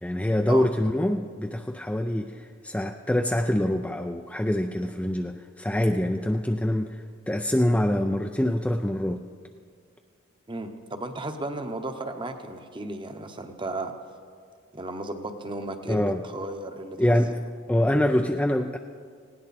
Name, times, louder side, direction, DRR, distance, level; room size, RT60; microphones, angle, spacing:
voice 1, 0.0-9.2 15.9-16.2 17.0-17.4 17.7-18.8, left 1 dB, 5° left, 4 dB, 0.4 m, -25 dB
voice 2, 10.5-13.9 14.7-17.0, right 2 dB, 25° right, 7 dB, 0.9 m, -34 dB
19.0 x 17.0 x 4.2 m, 2.1 s
head